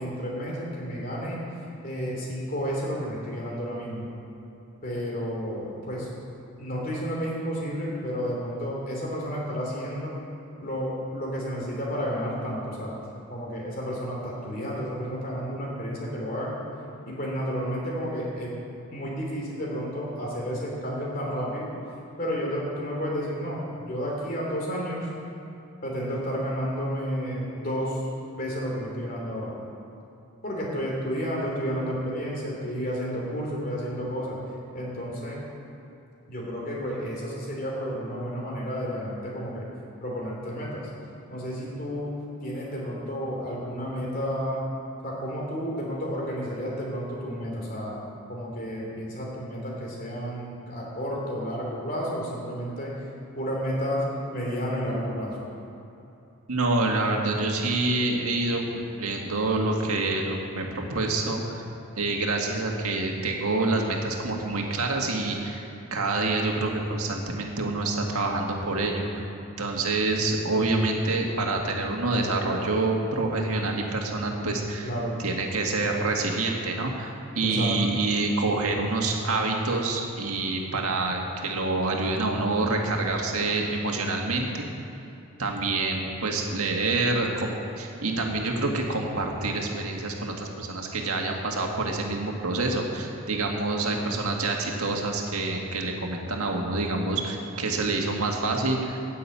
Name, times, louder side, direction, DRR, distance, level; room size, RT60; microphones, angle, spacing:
voice 1, 0.0-1.4 1.8-4.1 4.8-6.1 6.6-10.1 10.6-12.9 13.3-16.5 17.0-18.5 18.9-21.7 22.2-25.1 25.8-28.0 28.3-29.5 30.4-34.4 34.7-35.4 36.3-39.6 40.0-40.8 41.3-42.1 42.4-44.6 45.0-48.0 48.3-52.9 53.4-54.1 54.3-55.3 74.8-75.2 77.4-77.8, equal, 40° left, -3 dB, 3.0 m, -31 dB
voice 2, 56.5-61.6 62.0-65.6 65.9-69.2 69.6-74.9 75.2-84.7 85.4-99.0, right 2 dB, 85° right, 1 dB, 1.8 m, -27 dB
9.9 x 8.6 x 8.5 m, 2.8 s
head